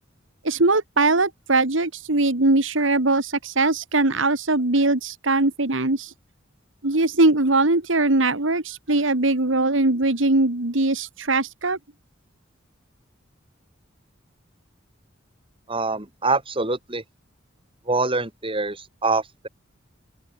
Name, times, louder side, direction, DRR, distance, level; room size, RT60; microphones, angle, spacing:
voice 1, 0.4-6.1 6.8-11.8, right 2 dB, 75° right, 2.1 m, -21 dB
voice 2, 15.7-17.0 17.9-19.5, right 3 dB, 25° right, 4.2 m, -25 dB
open air
head